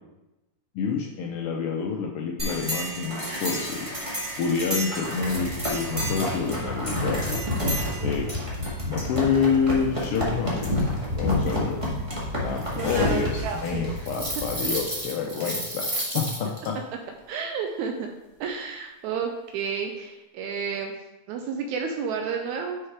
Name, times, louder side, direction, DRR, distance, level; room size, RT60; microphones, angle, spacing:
voice 1, 0.7-3.9 4.4-7.4 8.0-8.3 8.9-10.8 11.2-11.8 12.4-13.3 13.6-16.8, left 6 dB, 90° left, 0 dB, 1.2 m, -27 dB
sound 1, 2.4-16.7, equal, 15° right, 1.1 m, -29 dB
voice 2, 12.7-13.9 14.6-14.7 17.3-18.1 18.4-20.9 21.3-22.8, right 6 dB, 85° right, 3 dB, 2.0 m, -31 dB
6.5 x 5.7 x 4.6 m, 0.98 s
omnidirectional pair, 3.4 m